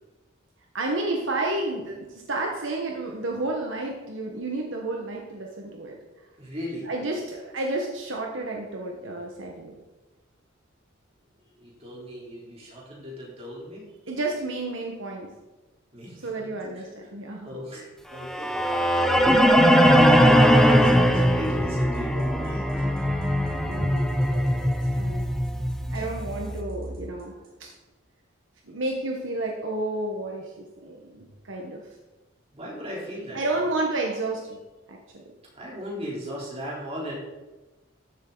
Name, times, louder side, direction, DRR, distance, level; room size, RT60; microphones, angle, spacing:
voice 1, 0.7-6.0 6.8-9.7 14.1-15.3 16.2-17.5 23.6-25.2 25.9-27.7 28.6-31.8 33.3-34.6 34.9-35.2, right 2 dB, 70° right, 0 dB, 1.3 m, -31 dB
voice 2, 6.4-6.9 11.6-13.9 15.9-16.6 17.4-19.2 19.8-23.3 32.5-33.4 35.5-37.1, equal, 30° right, -5 dB, 3.8 m, -36 dB
sound 1, 18.2-26.3, equal, ahead, 0.6 m, -20 dB
sound 2, 19.9-27.7, right 1 dB, 45° right, 3.6 m, -36 dB
13.5 x 7.7 x 4.0 m, 1.1 s
head